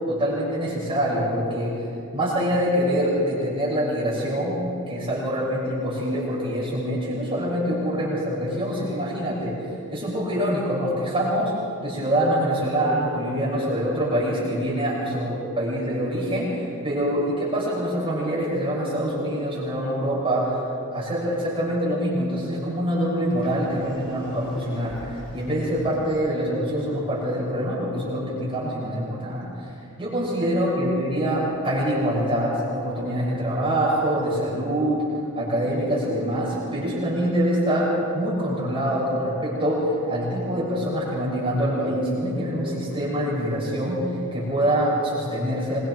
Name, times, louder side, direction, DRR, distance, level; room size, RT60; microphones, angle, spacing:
voice 1, 0.1-1.8 2.1-4.6 4.9-9.6 9.9-11.5 11.8-20.6 20.9-29.7 30.0-35.0 35.4-45.8, equal, 25° right, -7 dB, 6.3 m, -25 dB
Sliding door, 23.2-26.2, equal, 25° left, 5.2 m, -43 dB
26.0 x 22.5 x 4.7 m, 2.8 s
head